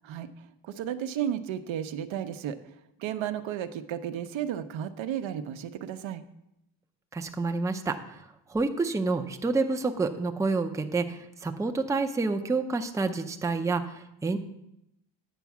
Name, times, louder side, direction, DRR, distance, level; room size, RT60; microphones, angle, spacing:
voice 1, 0.6-2.6 3.0-6.2, right 10 dB, 75° right, 9 dB, 0.8 m, -33 dB
voice 2, 7.1-14.4, right 3 dB, 5° right, 6 dB, 0.5 m, -29 dB
9.3 x 4.6 x 7.2 m, 0.83 s
cardioid pair, 115°, 46 cm